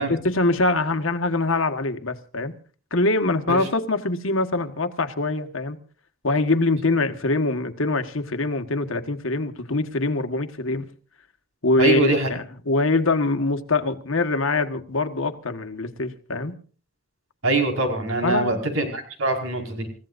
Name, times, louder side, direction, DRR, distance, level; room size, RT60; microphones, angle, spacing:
voice 1, 0.0-2.5 2.9-5.8 6.2-10.9 11.6-16.6 18.2-18.6, left 2 dB, 70° left, 1.6 m, -23 dB
voice 2, 11.8-12.3 17.4-19.9, right 2 dB, 75° right, 5.1 m, -23 dB
29.0 x 15.5 x 2.6 m
head